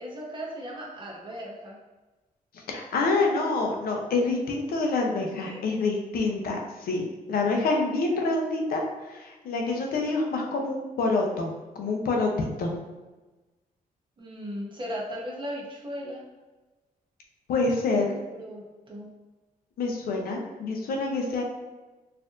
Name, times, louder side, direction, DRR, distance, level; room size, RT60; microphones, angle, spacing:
voice 1, 0.0-1.8 5.3-5.6 14.2-16.3 18.3-19.1, equal, 35° right, -3 dB, 0.9 m, -37 dB
voice 2, 2.7-11.5 11.7-12.7 17.5-18.1 19.8-21.4, left 3 dB, 85° left, 1 dB, 0.7 m, -27 dB
4.3 x 2.6 x 2.5 m, 1.1 s
cardioid pair, 125°, 15 cm